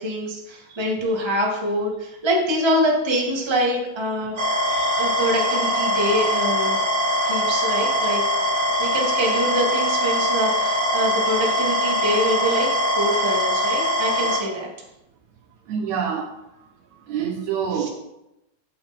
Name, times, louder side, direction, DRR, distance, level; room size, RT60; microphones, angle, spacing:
voice 1, 0.0-4.4 5.0-6.8 7.2-8.2 8.8-14.7 17.7-17.9, equal, 10° right, -2 dB, 1.6 m, -25 dB
sound 1, 4.4-14.4, equal, 40° right, 2.1 m, -22 dB
voice 2, 15.7-16.3 17.1-17.9, right 7 dB, 70° right, 3 dB, 2.2 m, -27 dB
13.0 x 7.9 x 4.4 m, 0.89 s
omnidirectional pair, 3.7 m